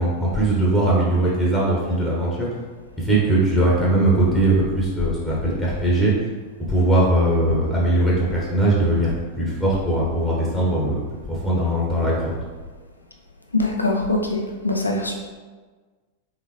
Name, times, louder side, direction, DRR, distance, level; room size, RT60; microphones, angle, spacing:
voice 1, 0.0-2.5 3.0-6.1 6.7-9.1 9.4-11.0 11.3-12.3, right 1 dB, 5° left, -6 dB, 1.0 m, -20 dB
voice 2, 13.5-15.1, left 2 dB, 80° left, 1 dB, 0.6 m, -23 dB
3.8 x 3.6 x 3.2 m, 1.4 s
figure-of-eight pair, 90°, 0 cm